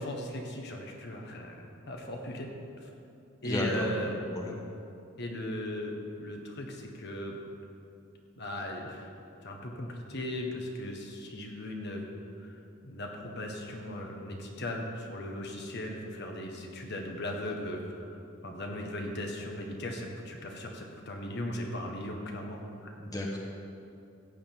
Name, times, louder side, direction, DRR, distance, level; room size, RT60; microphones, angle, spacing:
voice 1, 0.0-2.5 2.8-2.9 3.4-4.2 5.2-7.4 8.4-9.1 9.4-12.0 12.4-12.6 12.8-22.6, left 1 dB, 55° left, 1 dB, 1.5 m, -37 dB
voice 2, 3.4-3.9 4.2-4.6 23.0-23.4, left 1 dB, 20° left, -1 dB, 1.3 m, -33 dB
15.0 x 5.2 x 8.9 m, 2.7 s
head